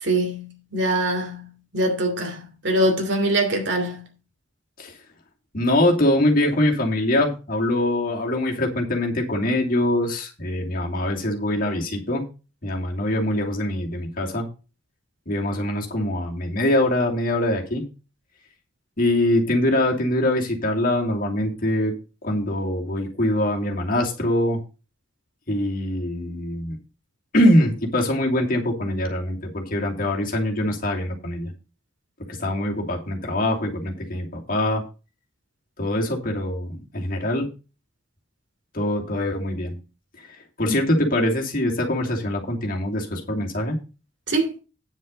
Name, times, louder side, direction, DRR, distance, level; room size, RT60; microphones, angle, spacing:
voice 1, 0.0-1.5 1.7-4.0 40.7-40.8 44.3-44.5, right 1 dB, 65° right, 2.8 m, -23 dB
voice 2, 5.5-12.2 12.6-14.5 15.3-17.8 19.0-21.9 22.2-24.6 25.5-26.8 27.3-31.5 32.3-34.8 35.8-37.5 38.7-39.8 40.6-43.8, left 1 dB, 45° left, 2.7 m, -23 dB
9.7 x 6.4 x 5.3 m
head